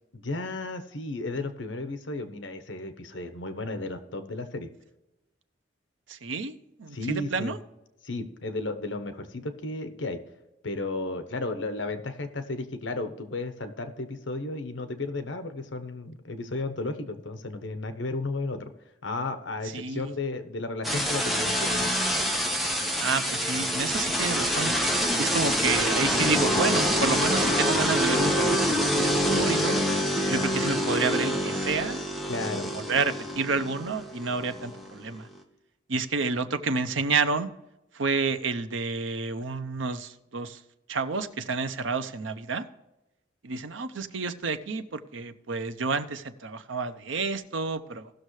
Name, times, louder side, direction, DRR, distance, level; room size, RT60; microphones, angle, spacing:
voice 1, 0.1-4.7 6.9-7.6 8.0-10.2 10.6-18.7 19.0-22.0 32.3-32.7, left 2 dB, 75° left, 8 dB, 1.1 m, -33 dB
voice 2, 6.1-7.6 19.6-20.1 23.0-24.7 25.2-29.8 30.3-32.0 32.7-35.3 35.9-37.5 37.9-40.6 40.9-42.6 43.4-48.1, right 4 dB, 90° right, 10 dB, 0.8 m, -30 dB
sound 1, 20.8-35.4, equal, ahead, 1.2 m, -26 dB
17.5 x 6.5 x 3.2 m, 0.98 s
head